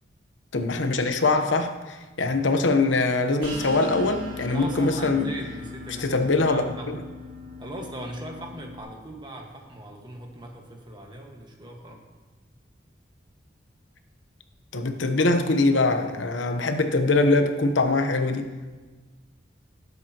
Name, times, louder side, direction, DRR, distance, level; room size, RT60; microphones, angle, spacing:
voice 1, 0.5-5.3 6.0-6.7 14.7-18.5, left 3 dB, 90° left, 7 dB, 0.9 m, -23 dB
sound 1, 3.4-8.8, left 2 dB, 85° right, 4.2 m, -39 dB
voice 2, 4.5-6.9 7.6-12.0, right 1 dB, 25° right, 1 dB, 1.5 m, -39 dB
19.5 x 8.2 x 3.0 m, 1.3 s
head